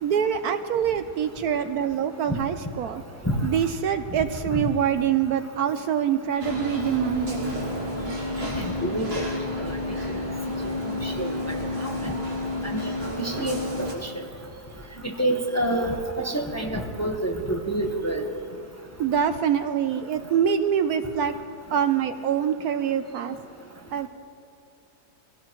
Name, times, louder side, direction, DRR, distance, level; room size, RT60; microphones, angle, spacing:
voice 1, 0.0-3.0 3.4-7.6 11.0-11.1 19.0-21.4 21.7-23.4 23.9-24.1, right 8 dB, 70° right, 9 dB, 1.0 m, -25 dB
sound 1, 6.4-13.9, left 1 dB, 35° right, 2.6 m, -30 dB
voice 2, 8.4-9.3 9.6-9.8 10.6-11.3 11.8-12.1 12.7-14.2 15.0-18.3, right 1 dB, 10° left, 1 dB, 1.0 m, -28 dB
24.5 x 16.5 x 3.1 m, 2.4 s
omnidirectional pair, 1.8 m